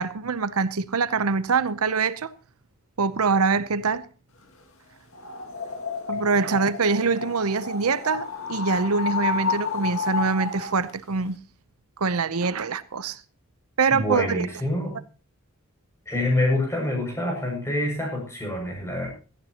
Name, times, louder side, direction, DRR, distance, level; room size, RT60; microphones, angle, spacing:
voice 1, 0.0-2.3 3.0-4.1 6.1-11.4 12.0-13.2 13.8-14.5, right 4 dB, 90° right, 0.8 m, -24 dB
sound 1, 5.1-10.9, left 5 dB, 65° left, 2.2 m, -31 dB
voice 2, 13.9-14.9 16.1-19.1, left 1 dB, 15° left, 6.6 m, -26 dB
17.0 x 14.5 x 2.9 m
head